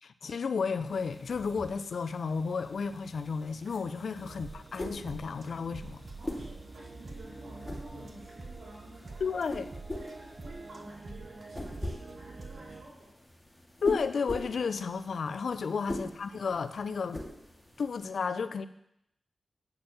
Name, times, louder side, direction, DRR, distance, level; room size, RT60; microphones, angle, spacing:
voice 1, 0.0-6.1 9.2-9.7 13.8-17.2 17.8-18.7, left 5 dB, 80° left, 13 dB, 0.6 m, -32 dB
sound 1, 0.6-10.8, right 1 dB, 10° right, 5.0 m, -61 dB
sound 2, 0.8-18.0, left 1 dB, 25° left, 2.7 m, -43 dB
sound 3, 4.2-12.8, right 3 dB, 50° right, 1.5 m, -46 dB
voice 2, 6.2-9.6 9.9-13.2 15.6-15.8, right 1 dB, 75° right, -4 dB, 4.2 m, -50 dB
9.3 x 6.6 x 7.1 m, 0.77 s
cardioid pair, 40°, 0 cm